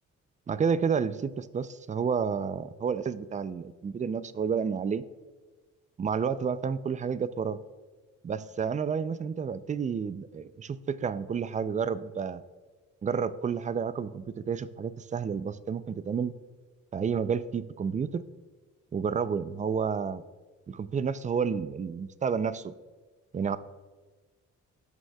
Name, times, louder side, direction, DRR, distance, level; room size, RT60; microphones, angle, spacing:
voice 1, 0.5-5.0 6.0-7.6 8.2-12.4 13.0-16.3 16.9-18.2 18.9-20.2 20.7-22.7 23.3-23.6, right 6 dB, 25° right, 15 dB, 0.4 m, -30 dB
14.0 x 6.3 x 2.3 m, 1.3 s
cardioid pair, 90°, 30 cm